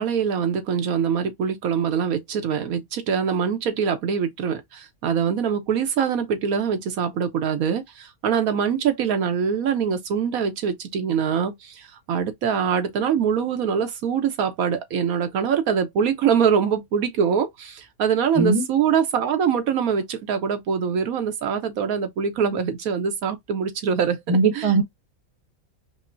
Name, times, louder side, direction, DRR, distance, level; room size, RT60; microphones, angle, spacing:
voice 1, 0.0-24.7, right 7 dB, 85° right, 1.3 m, -24 dB
voice 2, 24.3-24.8, right 3 dB, 30° right, 0.7 m, -19 dB
5.2 x 2.2 x 2.5 m
omnidirectional pair, 1.5 m